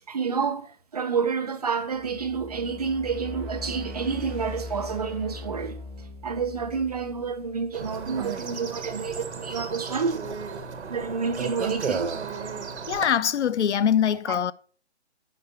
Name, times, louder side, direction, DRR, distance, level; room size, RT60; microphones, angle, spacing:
voice 1, 0.1-5.8 6.2-10.2 10.9-12.2 14.3-14.5, right 5 dB, 35° right, 0.8 m, -29 dB
sound 1, 1.9-8.1, left 3 dB, 10° right, 0.9 m, -40 dB
sound 2, 7.7-13.1, right 5 dB, 80° right, 1.5 m, -34 dB
voice 2, 12.9-14.5, left 9 dB, 80° left, 0.6 m, -23 dB
10.0 x 5.1 x 4.2 m
hypercardioid pair, 175°, 34 cm